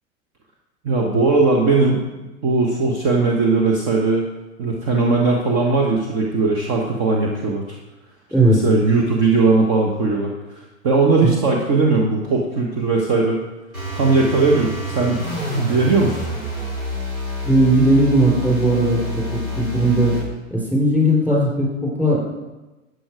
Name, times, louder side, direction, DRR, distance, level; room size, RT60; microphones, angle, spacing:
voice 1, 0.8-2.0 2.4-4.2 4.6-7.8 8.4-13.4 13.9-15.3 15.5-16.2, right 3 dB, 35° right, 0 dB, 1.5 m, -19 dB
sound 1, 13.7-20.3, left 1 dB, 85° right, 4.2 m, -28 dB
voice 2, 17.4-20.1 20.5-22.2, right 1 dB, 5° right, -3 dB, 4.4 m, -17 dB
12.0 x 8.1 x 4.9 m, 1.1 s
figure-of-eight pair, 95°, 41 cm